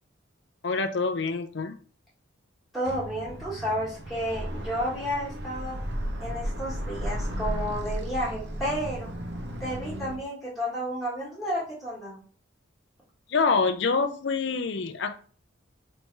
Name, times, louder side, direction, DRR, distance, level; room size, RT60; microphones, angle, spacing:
voice 1, 0.6-1.8 13.3-15.1, left 4 dB, 60° left, 7 dB, 0.5 m, -26 dB
voice 2, 2.7-5.8 6.2-9.1 9.6-12.2, equal, ahead, -8 dB, 1.3 m, -31 dB
sound 1, 2.8-10.2, equal, 55° right, 0.6 m, -34 dB
3.1 x 2.7 x 4.5 m, 0.43 s
head